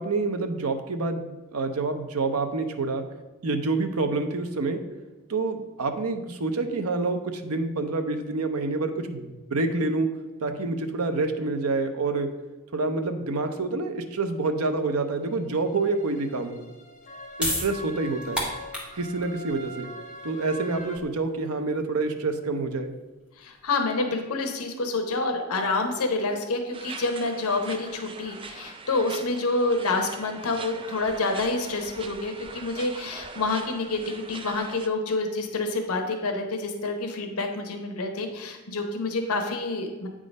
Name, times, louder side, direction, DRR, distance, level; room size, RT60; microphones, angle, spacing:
voice 1, 0.0-3.0 3.4-4.8 5.3-10.1 10.4-12.3 12.7-16.6 17.4-18.5 19.0-19.9 20.2-22.9, right 3 dB, 80° right, 7 dB, 0.7 m, -27 dB
sound 1, 15.2-21.0, equal, 35° left, 0.8 m, -43 dB
sound 2, 16.9-23.7, left 1 dB, 5° right, 1.2 m, -35 dB
voice 2, 23.4-40.1, left 3 dB, 85° left, 4 dB, 0.9 m, -28 dB
sound 3, 26.7-34.9, right 4 dB, 25° right, 0.3 m, -42 dB
8.5 x 3.8 x 5.2 m, 1.1 s
head